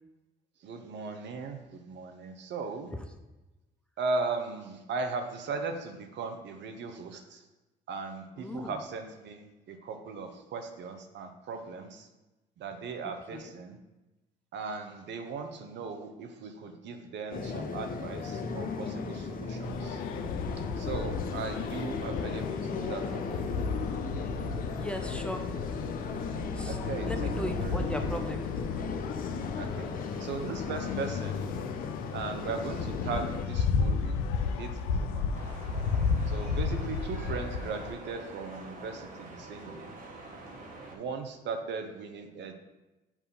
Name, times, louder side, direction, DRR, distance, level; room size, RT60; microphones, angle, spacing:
voice 1, 0.6-2.9 4.0-7.5 7.9-12.1 12.6-13.8 14.5-20.0 20.8-23.5 26.7-28.0 29.2-29.9 30.2-31.4 32.1-35.3 36.3-39.9 40.9-42.5, right 4 dB, 60° right, 5 dB, 0.8 m, -38 dB
voice 2, 8.4-8.7 13.3-13.5 24.8-25.4 26.5-26.8 27.1-28.5, equal, 5° left, 5 dB, 0.7 m, -37 dB
sound 1, 17.3-33.5, left 5 dB, 45° left, 0.7 m, -36 dB
sound 2, 19.6-37.9, left 5 dB, 80° left, 0.5 m, -34 dB
sound 3, 35.3-41.0, right 2 dB, 40° right, 1.4 m, -46 dB
7.2 x 2.8 x 5.3 m, 1.0 s
hypercardioid pair, 60°, 21 cm